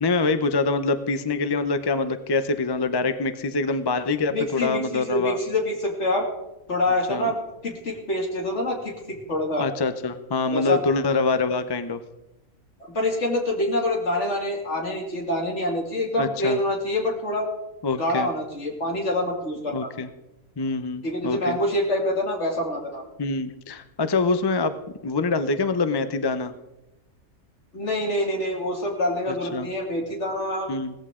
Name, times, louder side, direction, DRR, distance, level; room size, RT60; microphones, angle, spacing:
voice 1, 0.0-5.4 7.1-7.3 9.6-12.0 16.2-16.6 17.8-18.3 19.7-20.1 20.6-21.6 23.2-24.7 25.0-26.5 29.5-29.7 30.7-30.9, left 3 dB, 35° left, 10 dB, 0.4 m, -25 dB
voice 2, 4.3-6.3 6.7-7.4 7.6-9.6 10.5-10.8 12.8-17.5 18.0-19.9 21.0-23.0 27.7-30.7, left 1 dB, 50° left, 0 dB, 2.9 m, -26 dB
17.5 x 14.5 x 3.7 m, 0.96 s
omnidirectional pair, 1.5 m